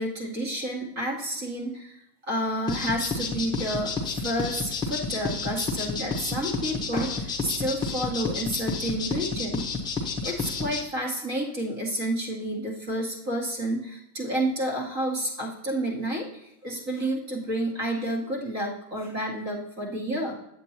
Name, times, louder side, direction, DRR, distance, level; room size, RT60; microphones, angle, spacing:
voice 1, 0.0-1.9 2.2-9.7 10.2-16.3 16.6-20.3, right 1 dB, 35° right, -1 dB, 2.3 m, -30 dB
sound 1, 2.7-10.8, left 4 dB, 10° left, 1.0 m, -30 dB
8.0 x 7.6 x 2.9 m, 0.79 s
supercardioid pair, 135°, 47 cm